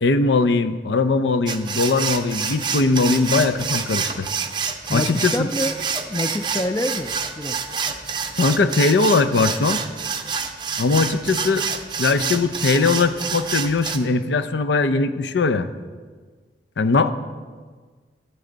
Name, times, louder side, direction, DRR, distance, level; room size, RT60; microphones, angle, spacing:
voice 1, 0.0-4.3 4.9-5.5 8.4-9.8 10.8-11.6 12.0-15.7 16.8-17.1, left 3 dB, 80° left, 11 dB, 0.5 m, -20 dB
sound 1, 1.5-14.0, right 6 dB, 25° right, 0.6 m, -27 dB
voice 2, 4.9-5.7 6.1-7.6 17.0-17.1, left 1 dB, 20° left, 10 dB, 0.4 m, -26 dB
12.5 x 7.6 x 3.9 m, 1.5 s
head